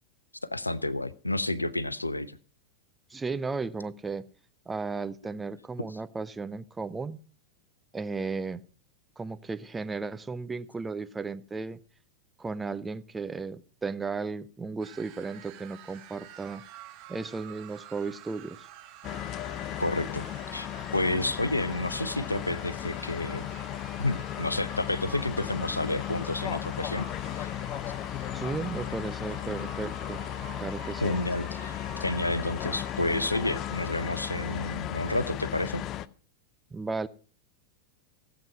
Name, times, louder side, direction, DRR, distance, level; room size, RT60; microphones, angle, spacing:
voice 1, 0.4-2.4 19.8-20.3 20.5-20.7 20.9-23.5 24.0-27.1 27.4-27.5 31.0-35.8, left 2 dB, 85° left, 0.6 m, -30 dB
voice 2, 3.1-4.3 4.7-7.2 7.9-8.6 9.2-11.8 12.4-16.6 17.1-18.7 28.3-30.2 30.6-31.2 36.7-37.1, right 4 dB, 10° right, 0.6 m, -35 dB
sound 1, 14.8-34.8, right 11 dB, 40° right, 1.7 m, -49 dB
sound 2, 19.0-36.1, left 12 dB, 35° left, 0.5 m, -36 dB
16.0 x 8.1 x 5.3 m
figure-of-eight pair, 90°, 0 cm